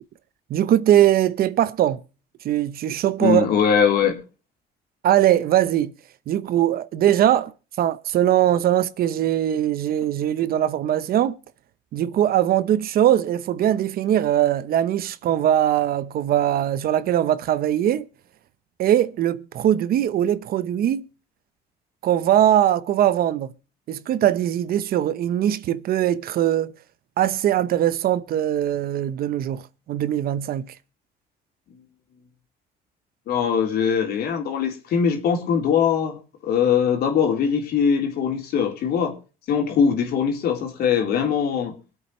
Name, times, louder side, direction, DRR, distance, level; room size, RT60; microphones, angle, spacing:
voice 1, 0.5-2.0 2.4-3.5 5.0-5.9 6.3-7.5 7.8-11.4 11.9-18.1 18.8-21.1 22.0-23.5 23.9-26.7 27.2-29.6 29.9-30.7, right 11 dB, 60° right, 0.9 m, -21 dB
voice 2, 3.2-4.2 33.3-39.2 39.5-41.8, left 7 dB, 70° left, 3.7 m, -21 dB
24.5 x 8.4 x 3.2 m
cardioid pair, 110°, 17 cm